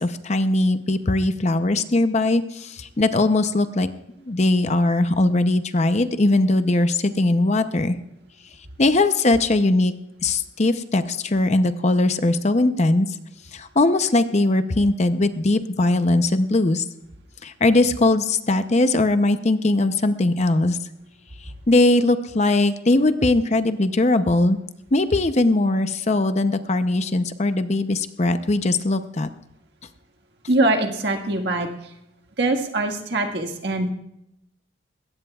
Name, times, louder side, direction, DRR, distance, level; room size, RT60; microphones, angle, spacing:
voice 1, 0.0-3.9 4.3-8.0 8.8-9.9 10.2-13.1 13.5-16.8 17.4-20.8 21.7-24.6 24.9-29.3, left 2 dB, 35° left, 10 dB, 0.6 m, -20 dB
voice 2, 30.5-31.7 32.4-33.9, right 2 dB, 60° right, 4 dB, 1.7 m, -22 dB
21.0 x 17.0 x 2.4 m, 0.83 s
head